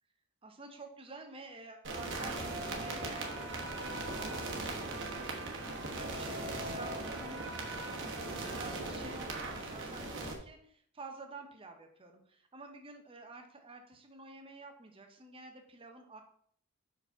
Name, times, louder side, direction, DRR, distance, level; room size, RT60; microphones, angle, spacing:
voice 1, 0.4-16.2, right 3 dB, 25° right, 4 dB, 0.8 m, -50 dB
sound 1, 1.8-10.3, right 2 dB, 55° right, 1.2 m, -39 dB
4.9 x 4.1 x 5.5 m, 0.62 s
head